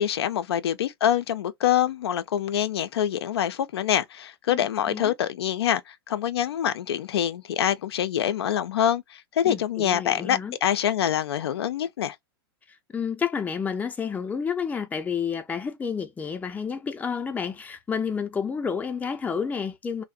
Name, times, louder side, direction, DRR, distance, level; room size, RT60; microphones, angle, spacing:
voice 1, 0.0-12.2, left 10 dB, 80° left, 0.4 m, -25 dB
voice 2, 4.5-5.1 9.4-10.6 12.9-20.0, left 6 dB, 10° left, 0.4 m, -30 dB
2.6 x 2.0 x 2.4 m
hypercardioid pair, 110°, 13 cm